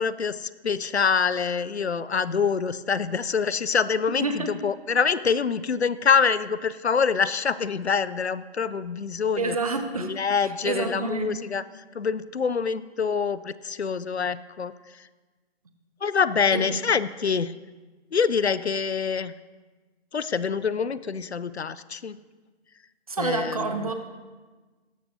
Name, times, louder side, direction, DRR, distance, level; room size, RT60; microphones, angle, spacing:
voice 1, 0.0-9.6 10.0-11.6 11.9-14.7 16.0-17.5 18.1-19.3 20.1-22.2 23.2-23.7, left 6 dB, 75° left, 16 dB, 0.6 m, -25 dB
voice 2, 9.4-10.1 10.6-11.3 16.5-16.7 23.1-23.9, right 3 dB, 35° right, 6 dB, 0.9 m, -28 dB
17.0 x 13.5 x 2.7 m, 1.3 s
figure-of-eight pair, 155°, 33 cm